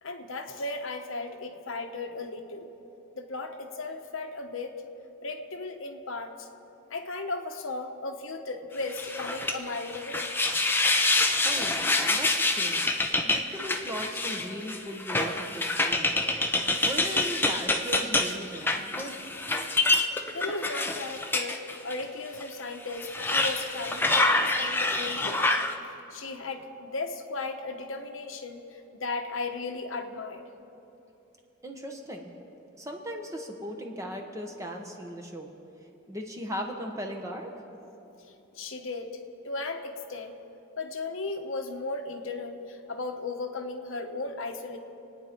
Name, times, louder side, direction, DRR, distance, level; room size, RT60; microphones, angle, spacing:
voice 1, 0.0-2.7 3.1-4.7 5.2-6.5 6.9-10.3 20.2-21.6 21.8-25.6 26.1-30.4 38.3-39.2 39.4-40.4 40.8-44.8, left 3 dB, 80° left, 5 dB, 1.1 m, -36 dB
sound 1, 8.9-22.0 22.4-22.5 22.9-25.7, left 2 dB, 10° left, 0.7 m, -27 dB
voice 2, 11.4-11.8 12.1-12.9 13.2-19.2 31.6-32.3 32.8-35.5 36.1-37.5, equal, 15° right, 2 dB, 1.4 m, -38 dB
27.0 x 9.6 x 4.5 m, 2.9 s
head